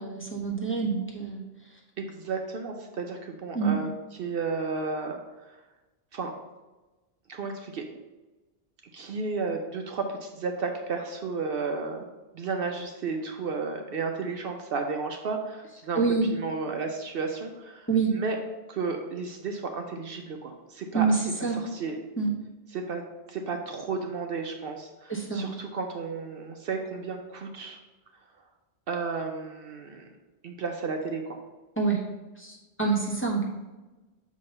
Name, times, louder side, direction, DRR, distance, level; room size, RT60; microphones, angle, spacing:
voice 1, 0.0-1.4 3.5-3.7 15.9-16.3 17.9-18.1 20.9-21.6 22.2-22.3 25.1-25.4 31.8-32.0 32.4-33.4, right 4 dB, 10° left, -4 dB, 1.1 m, -26 dB
voice 2, 2.0-5.6 6.1-6.3 7.3-7.8 8.9-12.1 12.3-16.0 16.3-18.4 18.7-22.0 22.7-23.0 23.3-27.8 28.9-30.2 30.4-31.4, right 4 dB, 65° right, 3 dB, 0.8 m, -33 dB
7.2 x 2.8 x 5.3 m, 1.1 s
omnidirectional pair, 1.1 m